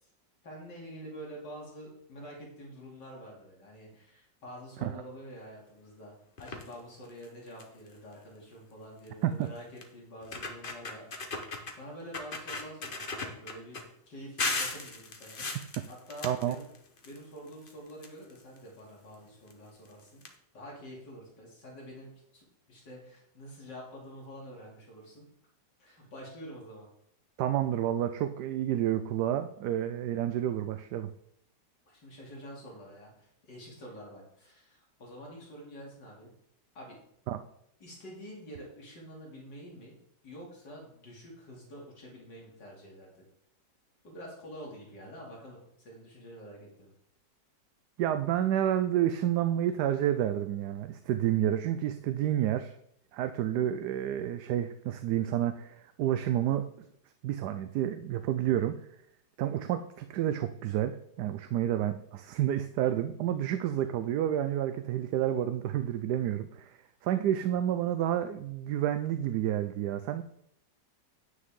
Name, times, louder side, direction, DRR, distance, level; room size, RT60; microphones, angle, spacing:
voice 1, 0.4-6.1 6.4-11.0 11.8-13.8 14.1-15.5 15.9-16.6 17.0-20.2 20.5-25.2 25.8-26.9 31.9-36.3 36.7-37.0 37.8-40.0 40.2-43.1 44.0-46.9, equal, 75° left, -3 dB, 3.4 m, -47 dB
sound 1, 6.4-6.7 7.2-7.3 7.6-7.9 9.1-9.2 9.8-9.9 10.2-11.8 12.1-13.8 14.4-17.2 17.5-18.6 19.5-19.6 19.9-20.0 20.2-20.3, left 3 dB, 35° left, 1.1 m, -36 dB
voice 2, 16.2-16.6 27.4-31.1 37.3-37.4 48.0-52.8 53.1-56.7 57.2-58.8 59.4-70.2, right 11 dB, 75° right, 9 dB, 1.1 m, -29 dB
9.6 x 9.4 x 3.7 m, 0.72 s
omnidirectional pair, 1.9 m